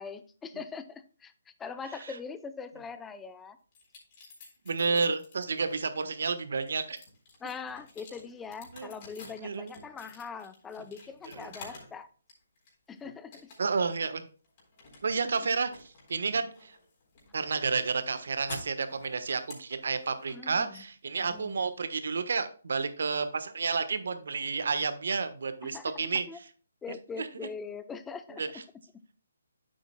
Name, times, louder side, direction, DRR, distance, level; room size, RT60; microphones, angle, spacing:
voice 1, 0.0-3.6 7.4-12.1 12.9-13.5 15.2-15.3 20.3-20.8 21.3-21.6 25.7-25.8 26.3-26.4 26.8-28.6, left 5 dB, 10° left, 11 dB, 0.6 m, -42 dB
sound 1, 3.7-5.7 6.2-12.0 12.3-12.9 13.3-13.9 14.2-22.1, left 3 dB, 35° left, 3.8 m, -50 dB
voice 2, 4.6-7.0 8.7-8.9 9.4-9.8 11.3-11.5 13.6-14.2 15.0-16.8 17.3-26.3 27.2-27.3 28.4-28.6, right 4 dB, 65° right, 10 dB, 1.1 m, -31 dB
9.9 x 7.9 x 2.2 m, 0.40 s
figure-of-eight pair, 145°, 0 cm